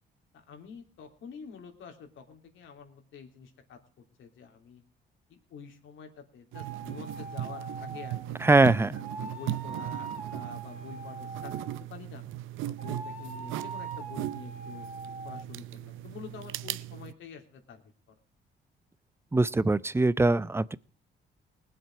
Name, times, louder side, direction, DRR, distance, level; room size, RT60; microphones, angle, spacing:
voice 1, 0.3-3.8 4.2-4.8 5.3-8.4 8.9-11.5 11.8-12.2 12.6-14.9 15.2-17.8 18.1-18.2, left 6 dB, 75° left, 3.2 m, -47 dB
sound 1, 6.5-8.3 8.9-11.8 12.8-15.4, right 4 dB, 35° right, 2.6 m, -42 dB
sound 2, 6.5-17.1, right 14 dB, 85° right, 0.5 m, -38 dB
voice 2, 8.4-9.0 19.3-20.8, right 2 dB, 10° right, 0.6 m, -22 dB
20.0 x 7.9 x 4.6 m
cardioid pair, 90°, 20 cm